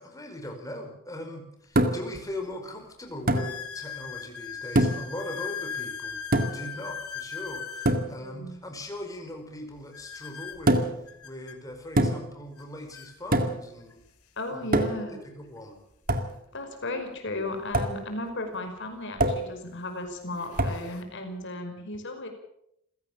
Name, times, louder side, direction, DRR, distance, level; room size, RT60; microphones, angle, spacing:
voice 1, 0.0-6.2 6.4-10.9 11.2-14.0 14.5-14.7 15.1-15.8, left 1 dB, 15° left, 3 dB, 5.1 m, -40 dB
sound 1, 1.6-1.7 2.4-2.5 3.3-8.0 9.9-11.6 12.6-12.7 12.9-13.1 13.9-14.0 16.2-16.3 18.4-18.5 19.2-19.5 20.1-21.0, left 7 dB, 80° left, 3.2 m, -39 dB
sound 2, 1.8-2.2 3.3-3.5 4.8-5.1 6.3-6.7 7.9-8.1 10.7-11.1 12.0-12.4 13.3-13.7 14.7-15.1 16.1-16.3 17.7-18.0 19.2-19.5 20.6-20.8, right 1 dB, 40° right, 2.2 m, -24 dB
voice 2, 8.1-8.6 14.4-15.1 16.5-22.3, left 2 dB, 55° left, 5 dB, 5.5 m, -35 dB
28.0 x 16.5 x 7.5 m, 0.77 s
head